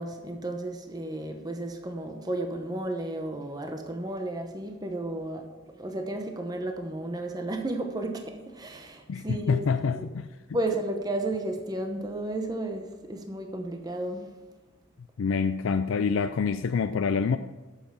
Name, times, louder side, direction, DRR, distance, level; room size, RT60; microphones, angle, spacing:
voice 1, 0.0-9.7 9.9-10.0 10.5-14.3, right 1 dB, 20° right, 4 dB, 0.9 m, -33 dB
voice 2, 9.1-10.3 15.2-17.4, left 5 dB, 80° left, 9 dB, 0.4 m, -26 dB
11.0 x 7.4 x 5.7 m, 1.2 s
head